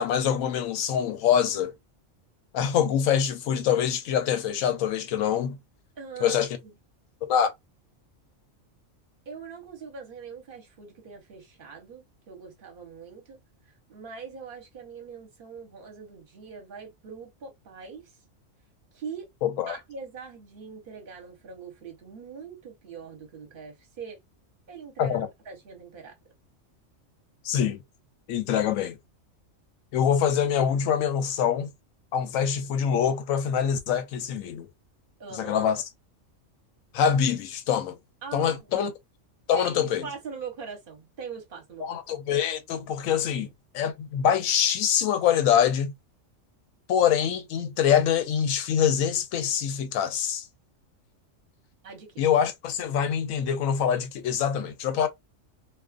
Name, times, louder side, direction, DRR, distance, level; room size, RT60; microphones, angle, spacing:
voice 1, 0.0-1.7 2.5-5.6 6.2-6.5 7.2-7.5 19.4-19.8 25.0-25.3 27.4-27.8 28.3-29.0 29.9-31.7 32.1-34.7 35.3-35.8 36.9-38.0 38.3-38.9 39.5-40.0 41.8-43.5 43.7-45.9 46.9-50.5 52.2-55.1, left 8 dB, 90° left, 1.0 m, -24 dB
voice 2, 6.0-6.7 9.3-18.2 18.9-19.3 19.7-24.2 24.7-26.2 35.2-35.6 38.2-38.8 39.5-42.0 51.8-52.2, right 5 dB, 45° right, 1.0 m, -42 dB
2.5 x 2.3 x 2.4 m
omnidirectional pair, 1.3 m